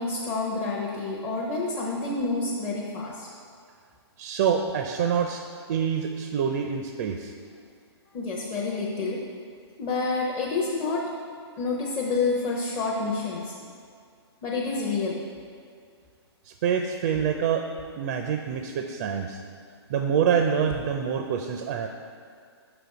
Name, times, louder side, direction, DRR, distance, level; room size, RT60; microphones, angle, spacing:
voice 1, 0.0-3.3 8.1-9.2 9.8-11.1 11.6-13.5 14.4-15.2, left 3 dB, 25° left, -4 dB, 0.7 m, -28 dB
voice 2, 4.2-5.4 5.7-7.3 16.5-17.6 18.0-19.4 19.9-21.9, right 7 dB, 40° right, 5 dB, 0.4 m, -26 dB
5.8 x 5.1 x 4.7 m, 2.2 s
hypercardioid pair, 145°, 14 cm